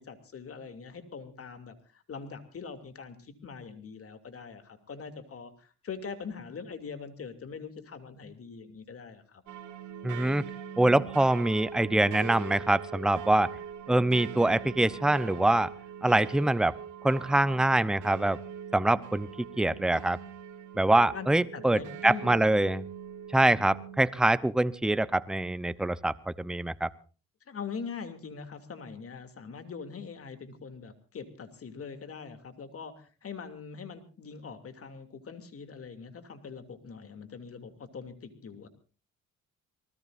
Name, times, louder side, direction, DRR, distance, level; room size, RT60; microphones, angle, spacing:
voice 1, 0.0-9.4 21.1-21.3 21.5-22.6 27.5-38.7, left 5 dB, 50° left, 8 dB, 2.8 m, -42 dB
sound 1, 9.5-24.0, right 9 dB, 85° right, 2.6 m, -42 dB
voice 2, 10.0-10.5 10.8-13.5 13.9-15.7 16.0-16.7 17.0-18.4 18.7-19.3 19.6-20.2 20.8-22.8 23.3-26.9, right 1 dB, ahead, 16 dB, 0.7 m, -24 dB
26.5 x 19.5 x 2.6 m, 0.37 s
cardioid pair, 90°, 30 cm